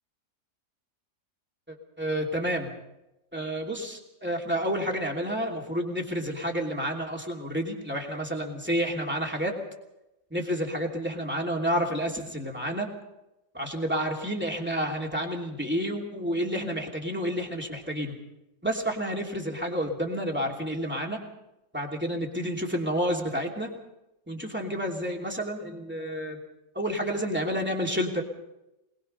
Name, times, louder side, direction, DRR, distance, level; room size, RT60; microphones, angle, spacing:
voice 1, 1.7-2.7 3.3-9.6 10.3-12.9 13.5-18.1 18.6-21.2 21.7-23.7 24.3-26.4 26.7-28.2, equal, 5° right, 0 dB, 2.9 m, -30 dB
24.0 x 20.0 x 5.5 m, 0.93 s
omnidirectional pair, 1.8 m